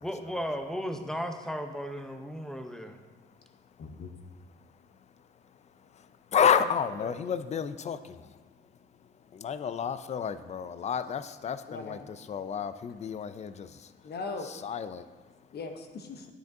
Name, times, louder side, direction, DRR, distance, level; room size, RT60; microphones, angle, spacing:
voice 1, 0.0-3.0, equal, 5° left, 6 dB, 0.7 m, -35 dB
voice 2, 3.8-4.1 7.0-7.1 11.7-12.1 14.0-14.5 15.5-16.3, left 4 dB, 55° left, 5 dB, 0.8 m, -39 dB
voice 3, 6.3-8.2 9.4-13.7 14.4-15.0, left 7 dB, 35° left, 13 dB, 0.4 m, -30 dB
9.3 x 7.7 x 2.7 m, 1.3 s
cardioid pair, 90°, 20 cm